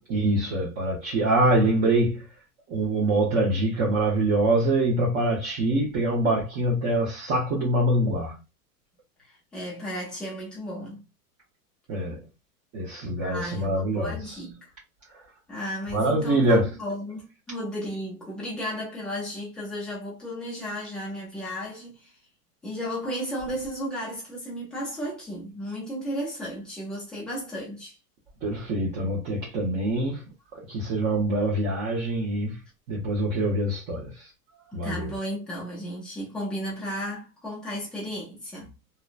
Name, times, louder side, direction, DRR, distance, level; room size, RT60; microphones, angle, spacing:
voice 1, 0.1-2.3 2.7-8.4 11.9-12.2 12.7-14.2 15.9-16.7 28.4-30.2 30.5-32.6 32.9-34.3 34.7-35.1, right 1 dB, 35° right, 0.8 m, -24 dB
voice 2, 9.2-11.0 13.2-14.7 15.5-22.1 22.6-28.0 34.7-38.7, equal, ahead, 0.3 m, -34 dB
2.8 x 2.1 x 2.4 m
hypercardioid pair, 135°, 48 cm